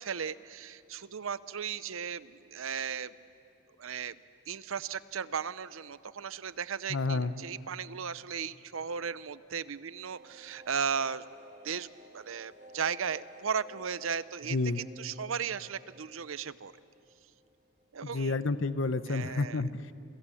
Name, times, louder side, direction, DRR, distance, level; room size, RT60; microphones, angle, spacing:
voice 1, 0.0-3.1 3.8-4.2 4.5-11.3 11.6-16.7 17.9-18.4 19.1-19.6, right 7 dB, 80° right, 16 dB, 0.7 m, -36 dB
voice 2, 6.9-7.3 14.5-14.8 18.0-19.9, left 3 dB, 70° left, 13 dB, 0.9 m, -30 dB
sound 1, 10.1-17.6 17.8-17.9 18.2-18.3, right 1 dB, 40° right, 2.5 m, -55 dB
29.0 x 22.5 x 8.5 m, 2.7 s
head